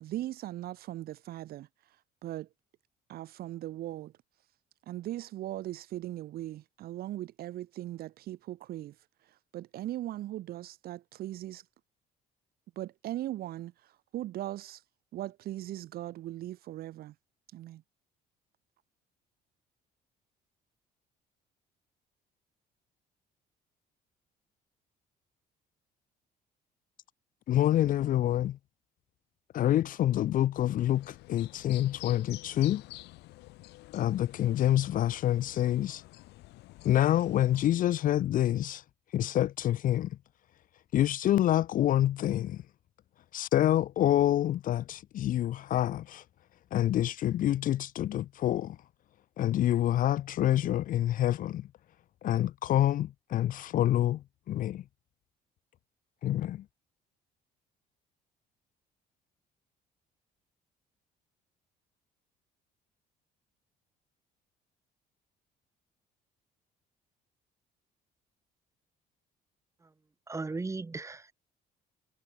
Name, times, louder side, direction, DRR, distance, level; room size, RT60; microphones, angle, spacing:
voice 1, 0.0-2.0 2.2-2.5 3.1-4.1 4.9-9.0 9.2-11.6 12.8-14.8 15.1-17.1 17.5-17.8, right 14 dB, 65° right, 0.8 m, -39 dB
voice 2, 27.5-28.6 29.5-32.8 33.9-36.0 36.8-38.8 39.1-40.2 40.9-42.6 43.3-46.2 46.7-48.8 49.4-51.7 52.2-54.8 56.2-56.6, left 12 dB, 55° left, 0.6 m, -27 dB
sound 1, 30.9-37.7, left 20 dB, 90° left, 1.8 m, -49 dB
voice 3, 70.3-71.3, right 3 dB, 15° right, 1.6 m, -36 dB
cardioid pair, 110°, 17 cm